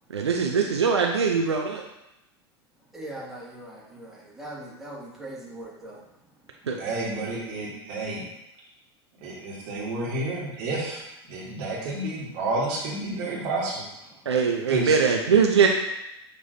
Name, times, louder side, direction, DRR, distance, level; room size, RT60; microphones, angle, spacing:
voice 1, 0.1-1.8 6.7-6.8 14.3-15.7, right 6 dB, 80° right, 2 dB, 0.4 m, -21 dB
voice 2, 2.9-6.0, right 1 dB, ahead, -6 dB, 1.5 m, -40 dB
voice 3, 6.8-8.3 9.2-11.0 11.3-13.8 14.7-14.9, right 2 dB, 50° right, -4 dB, 1.5 m, -30 dB
6.6 x 3.1 x 2.6 m, 0.87 s
figure-of-eight pair, 85°, 14 cm